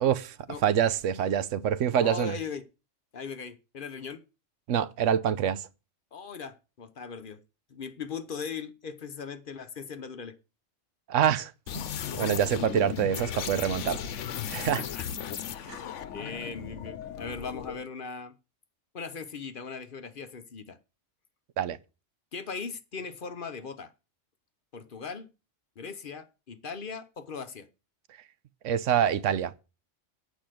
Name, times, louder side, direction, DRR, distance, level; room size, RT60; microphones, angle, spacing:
voice 1, 0.0-0.3 0.6-2.3 4.7-5.7 11.1-11.8 12.1-14.0 14.5-14.8 15.7-15.8 21.6-21.8 28.6-29.5, right 9 dB, 85° right, 1.0 m, -26 dB
voice 2, 1.9-2.6 3.1-4.2 6.1-7.4 7.7-10.4 13.9-14.0 14.8-15.1 15.4-15.9 16.1-18.3 18.9-20.8 22.3-23.9 24.7-25.3 25.8-27.7, left 5 dB, 50° left, 0.9 m, -39 dB
sound 1, 11.7-17.8, left 9 dB, 80° left, 1.1 m, -36 dB
8.7 x 5.0 x 7.6 m
omnidirectional pair, 1.3 m